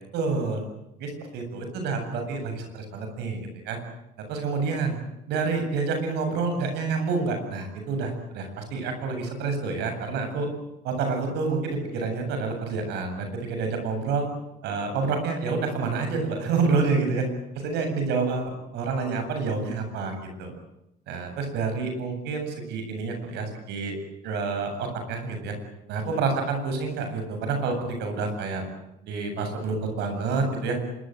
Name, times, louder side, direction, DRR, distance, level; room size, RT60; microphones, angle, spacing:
voice 1, 0.1-0.6 1.0-3.4 3.6-3.8 4.3-5.0 5.3-10.5 10.8-14.3 14.6-17.3 17.6-20.5 21.1-23.9 24.2-25.5 25.9-28.6 29.0-30.8, right 4 dB, 85° right, 5 dB, 7.9 m, -28 dB
25.5 x 22.5 x 8.0 m, 0.87 s
cardioid pair, 110°, 17 cm